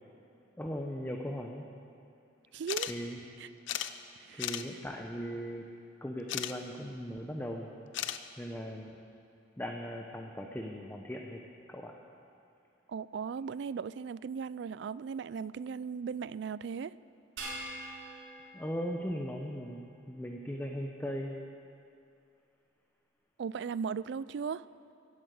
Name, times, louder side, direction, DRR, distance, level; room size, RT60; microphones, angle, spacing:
voice 1, 0.6-1.7 2.9-3.2 4.3-5.7 6.0-7.7 8.4-9.0 9.6-11.4 11.7-11.9 18.5-21.4, equal, 10° left, 1 dB, 0.8 m, -38 dB
voice 2, 2.5-2.9 3.4-3.5 4.2-4.4 12.9-16.9 23.4-24.6, right 6 dB, 65° right, 18 dB, 0.3 m, -37 dB
sound 1, 2.7-2.9 3.2-3.3 3.7-3.9 4.4-4.6 6.3-6.5 7.9-8.2, left 11 dB, 90° left, 0.6 m, -35 dB
sound 2, 17.4-19.9, right 1 dB, 85° right, 3.4 m, -45 dB
16.5 x 8.6 x 7.9 m, 2.6 s
head